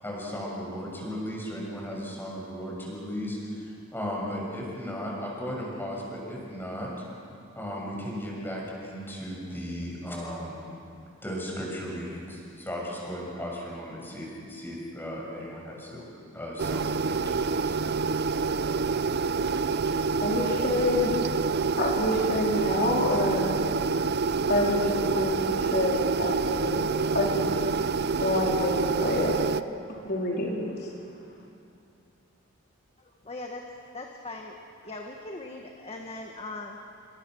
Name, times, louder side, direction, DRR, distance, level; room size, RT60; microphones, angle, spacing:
voice 1, 0.0-6.9 7.5-10.6 11.2-16.1 16.3-17.8, equal, 10° left, -3 dB, 7.0 m, -36 dB
sound 1, 16.6-29.6, right 4 dB, 50° right, 0.7 m, -27 dB
voice 2, 20.2-21.2 21.8-23.5 24.5-27.5 28.2-29.4 30.0-31.0, left 2 dB, 50° left, -2 dB, 4.3 m, -27 dB
voice 3, 33.0-36.9, left 2 dB, 30° left, 2 dB, 1.7 m, -40 dB
28.5 x 25.5 x 6.5 m, 2.6 s
head